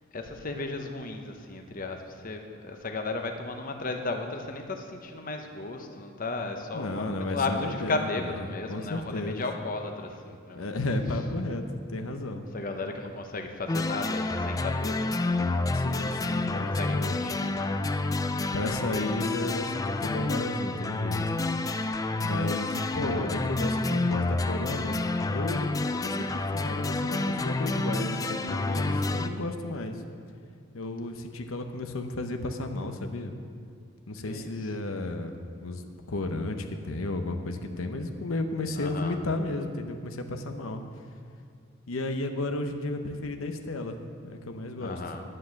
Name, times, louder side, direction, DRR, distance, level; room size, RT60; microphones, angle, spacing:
voice 1, 0.1-10.7 12.5-15.5 16.4-17.6 34.2-34.5 38.8-39.1 44.8-45.2, left 3 dB, 45° left, 4 dB, 0.9 m, -35 dB
voice 2, 6.7-9.4 10.5-11.6 11.9-12.4 15.7-17.2 18.2-21.4 22.2-25.0 25.3-30.0 30.7-33.3 34.1-35.8 36.1-40.8 41.9-45.0, left 2 dB, 90° left, 6 dB, 0.9 m, -33 dB
sound 1, 13.7-29.3, left 2 dB, 15° left, 0.4 m, -29 dB
10.0 x 9.7 x 6.4 m, 2.2 s
head